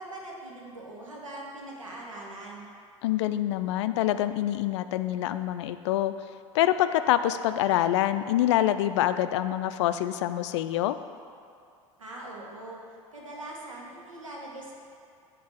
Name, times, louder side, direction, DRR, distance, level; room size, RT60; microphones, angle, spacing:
voice 1, 0.0-2.7 12.0-12.8 13.1-14.7, right 2 dB, 80° right, -2 dB, 1.2 m, -41 dB
voice 2, 3.0-6.1 6.5-10.9, left 12 dB, 60° left, 11 dB, 0.4 m, -26 dB
7.8 x 3.8 x 6.6 m, 2.4 s
figure-of-eight pair, 70°, 17 cm